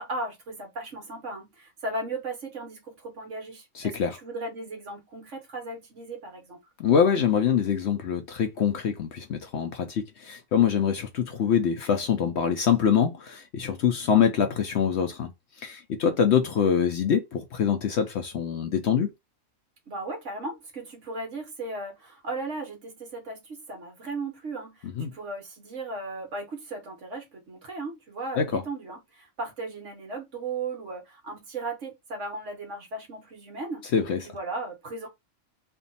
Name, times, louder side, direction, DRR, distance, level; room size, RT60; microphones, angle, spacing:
voice 1, 0.0-6.6 19.9-33.9 34.3-35.1, right 2 dB, 60° right, 1.5 m, -36 dB
voice 2, 3.7-4.2 6.8-15.3 15.6-19.1 25.0-25.1 28.4-28.6 33.9-34.2, left 7 dB, 60° left, 0.8 m, -24 dB
3.4 x 2.3 x 4.0 m
omnidirectional pair, 1.4 m